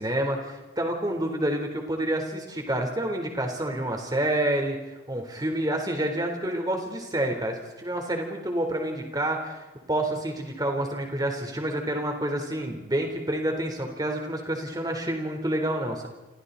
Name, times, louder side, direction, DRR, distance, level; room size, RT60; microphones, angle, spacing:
voice 1, 0.0-4.8 5.1-9.6 9.9-16.1, right 1 dB, 20° right, 3 dB, 3.9 m, -28 dB
29.5 x 26.0 x 4.2 m, 1.1 s
head